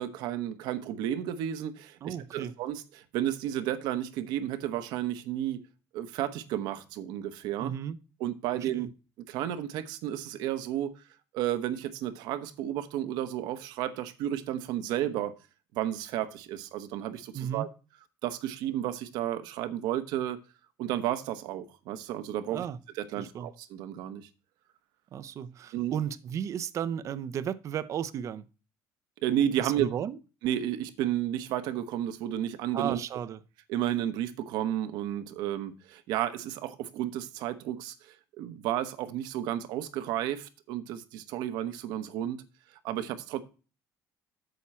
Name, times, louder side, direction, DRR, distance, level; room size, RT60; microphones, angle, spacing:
voice 1, 0.0-5.6 5.9-7.7 8.2-8.9 9.3-11.0 11.3-15.3 15.7-17.7 18.2-20.4 20.8-22.6 23.0-24.3 25.7-25.9 29.2-29.9 30.4-33.0 33.7-42.4 42.7-43.4, right 11 dB, 80° right, 1.1 m, -32 dB
voice 2, 2.0-2.5 7.6-8.0 8.5-8.9 17.3-17.7 22.5-22.8 23.2-23.5 25.1-28.5 29.6-30.2 32.7-33.4, right 9 dB, 45° right, 0.6 m, -34 dB
8.4 x 7.3 x 4.3 m
cardioid pair, 130°, 7 cm